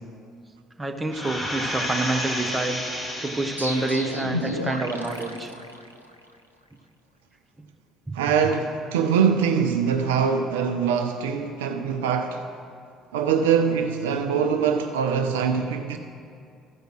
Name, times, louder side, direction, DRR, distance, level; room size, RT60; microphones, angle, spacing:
voice 1, 0.8-5.5, right 2 dB, 15° right, 1.0 m, -28 dB
sound 1, 1.1-4.5 5.0-5.1, equal, 20° left, 2.3 m, -31 dB
sound 2, 3.6-6.4, equal, 90° left, 0.4 m, -32 dB
voice 2, 8.1-12.5 13.1-16.0, right 6 dB, 70° right, 0.4 m, -23 dB
14.0 x 5.1 x 6.2 m
figure-of-eight pair, 50°, 0 cm